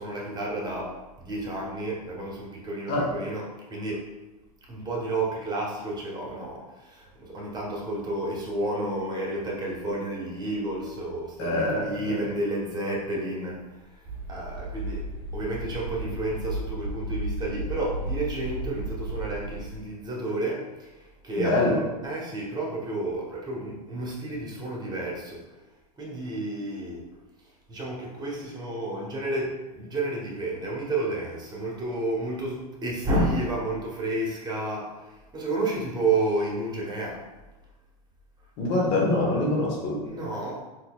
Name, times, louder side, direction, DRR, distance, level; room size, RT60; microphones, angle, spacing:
voice 1, 0.0-4.0 4.7-13.6 14.3-15.1 15.3-20.9 21.2-25.4 26.0-27.0 27.7-34.9 35.3-37.2 40.0-40.6, right 2 dB, 20° right, -3 dB, 1.1 m, -31 dB
voice 2, 11.4-12.2 21.4-21.8 38.6-40.0, left 2 dB, 50° left, -3 dB, 1.1 m, -25 dB
sound 1, 14.0-19.8, right 1 dB, 65° right, 0.9 m, -34 dB
4.1 x 2.8 x 2.3 m, 1.1 s
hypercardioid pair, 100°, 21 cm